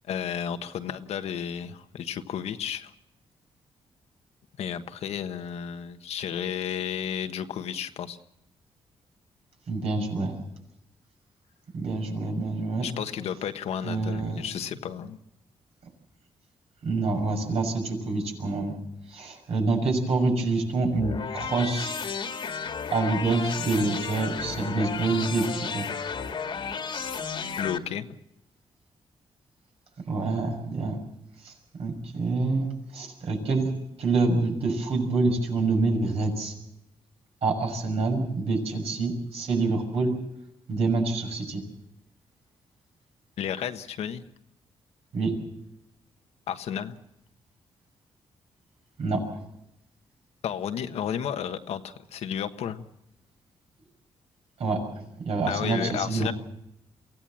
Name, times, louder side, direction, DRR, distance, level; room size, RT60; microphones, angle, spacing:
voice 1, 0.1-2.9 4.6-8.2 12.8-15.2 27.6-28.1 43.4-44.2 46.5-46.9 50.4-52.8 55.5-56.3, left 8 dB, 80° left, 8 dB, 1.3 m, -32 dB
voice 2, 9.7-10.4 11.7-12.9 13.8-14.4 16.8-18.8 19.1-22.1 22.9-25.9 30.1-31.0 31.4-31.5 31.8-33.7 34.0-36.5 37.4-40.1 40.7-41.6 45.1-45.3 49.0-49.4 54.6-56.3, right 3 dB, 70° right, 2 dB, 6.4 m, -27 dB
sound 1, 20.9-27.8, left 5 dB, 50° left, 1.8 m, -33 dB
24.0 x 16.0 x 7.6 m, 0.83 s
cardioid pair, 95°, 11 cm